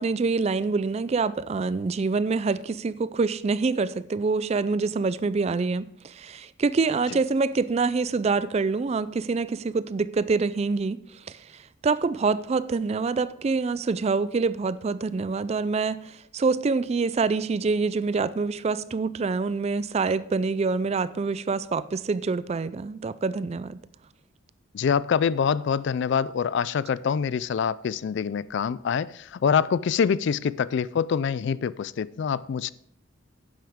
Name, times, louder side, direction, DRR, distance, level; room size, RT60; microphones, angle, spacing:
voice 1, 0.0-23.8, right 4 dB, 30° right, 0.3 m, -26 dB
voice 2, 24.7-32.7, left 7 dB, 55° left, 0.3 m, -25 dB
11.5 x 9.3 x 3.6 m
head